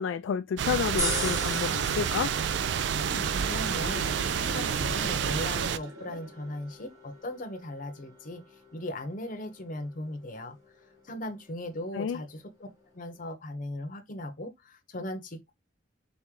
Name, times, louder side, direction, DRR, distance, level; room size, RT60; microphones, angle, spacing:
voice 1, 0.0-2.3 11.9-12.2, left 7 dB, 75° left, 0.3 m, -30 dB
sound 1, 0.6-5.8, right 8 dB, 60° right, 0.3 m, -29 dB
sound 2, 1.0-13.3, right 1 dB, 15° right, 1.4 m, -41 dB
Sink (filling or washing), 2.6-6.6, right 1 dB, 80° right, 1.4 m, -41 dB
voice 2, 3.1-8.4 8.7-10.6 11.0-12.7 12.9-15.5, left 1 dB, 40° left, 0.8 m, -38 dB
4.2 x 3.0 x 3.6 m
head